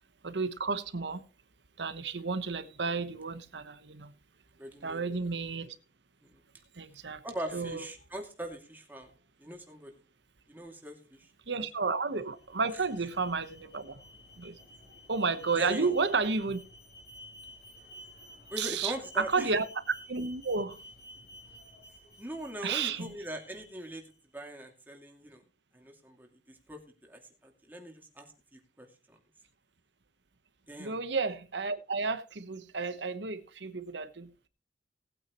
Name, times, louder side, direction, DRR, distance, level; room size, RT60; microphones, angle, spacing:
voice 1, 0.2-1.2 1.8-4.1 4.8-5.8 6.8-7.2 7.5-7.8 11.5-14.0 14.4-14.6 15.1-16.6 18.6-19.6 20.1-20.8 22.6-23.1 30.8-34.3, right 4 dB, 80° right, 1.1 m, -32 dB
voice 2, 4.6-5.2 6.2-6.3 7.2-9.1 9.4-9.9 10.5-11.3 12.7-12.8 15.5-15.9 18.5-19.5 22.2-24.0 24.3-25.4 25.7-29.2 30.7-31.0, right 1 dB, 10° right, 2.5 m, -41 dB
Alarm, 12.2-24.2, equal, 60° left, 4.3 m, -53 dB
19.0 x 8.9 x 3.1 m
head